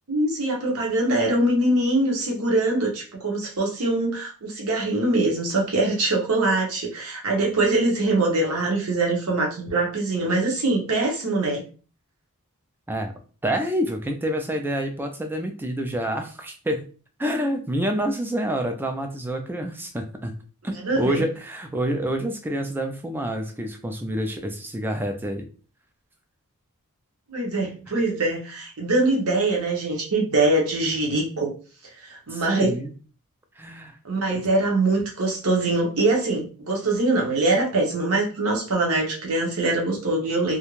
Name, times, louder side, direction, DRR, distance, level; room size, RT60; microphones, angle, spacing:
voice 1, 0.1-11.6 20.8-21.2 27.3-31.5 32.0-32.8 34.0-40.6, right 2 dB, 70° right, 0 dB, 0.8 m, -23 dB
voice 2, 13.4-16.9 17.2-20.3 20.6-25.4 32.3-32.9 33.6-34.0, right 1 dB, 10° right, 5 dB, 0.3 m, -27 dB
2.4 x 2.1 x 3.0 m, 0.38 s
head